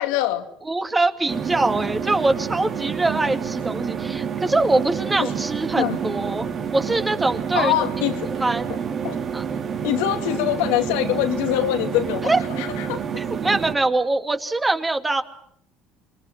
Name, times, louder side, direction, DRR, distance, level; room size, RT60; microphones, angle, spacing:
voice 1, 0.0-0.5 5.2-5.3 5.8-6.0 7.5-8.3 8.7-8.8 9.0-9.2 9.8-13.0, left 13 dB, 80° left, 6 dB, 2.3 m, -24 dB
voice 2, 0.7-6.5 6.7-7.7 8.4-8.7 9.3-9.4 12.3-12.4 13.2-15.2, right 2 dB, 15° right, 7 dB, 2.6 m, -23 dB
sound 1, 1.3-13.7, right 7 dB, 45° right, 3.3 m, -28 dB
27.0 x 22.5 x 7.6 m, 0.68 s
supercardioid pair, 85°, 0 cm